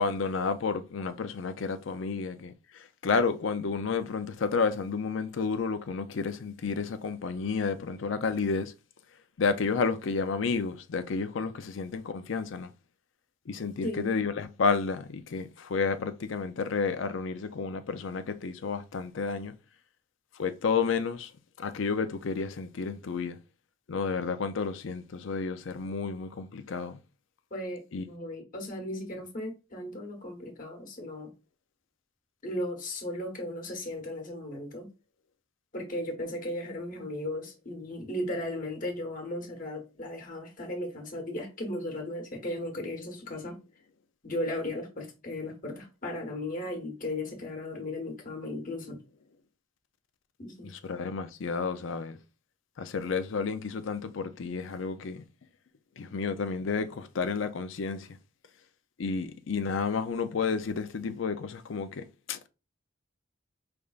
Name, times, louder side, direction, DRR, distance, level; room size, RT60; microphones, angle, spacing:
voice 1, 0.0-2.5 3.0-8.7 9.4-12.7 13.5-19.5 20.4-21.3 21.6-23.4 23.9-27.0 27.9-28.1 50.6-52.2 52.8-55.2 56.0-58.1 59.0-62.5, left 5 dB, 70° left, 0.5 m, -31 dB
voice 2, 27.5-31.3 32.4-34.9 35.7-43.6 44.2-49.0 50.4-50.7, left 1 dB, 45° left, 1.2 m, -36 dB
5.1 x 3.4 x 2.4 m
head